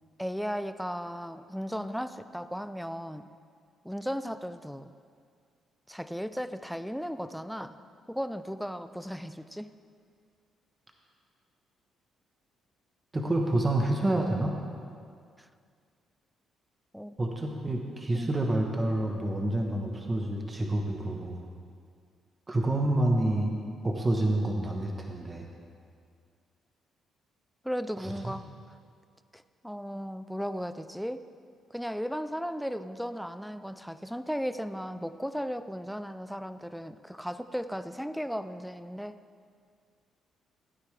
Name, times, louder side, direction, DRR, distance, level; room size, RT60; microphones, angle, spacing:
voice 1, 0.2-3.3 3.8-4.9 5.9-7.8 8.1-9.7 15.4-15.5 16.9-17.3 18.1-18.3 27.6-28.5 29.3-31.2 31.7-39.2, equal, ahead, 12 dB, 0.4 m, -36 dB
voice 2, 13.1-14.6 17.2-21.4 22.5-23.6 23.8-25.5 28.0-28.4, right 1 dB, 25° right, 1 dB, 1.1 m, -28 dB
15.0 x 9.4 x 3.3 m, 2.2 s
cardioid pair, 90°, 0 cm